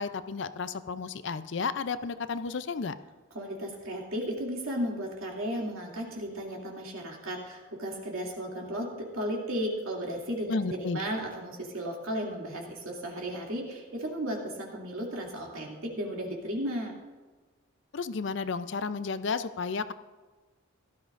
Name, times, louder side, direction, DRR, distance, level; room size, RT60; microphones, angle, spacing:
voice 1, 0.0-3.0 10.5-11.0 17.9-19.9, left 4 dB, 60° left, 12 dB, 0.5 m, -32 dB
voice 2, 3.3-17.0, equal, 90° right, -2 dB, 2.7 m, -34 dB
17.0 x 13.0 x 2.5 m, 1.3 s
head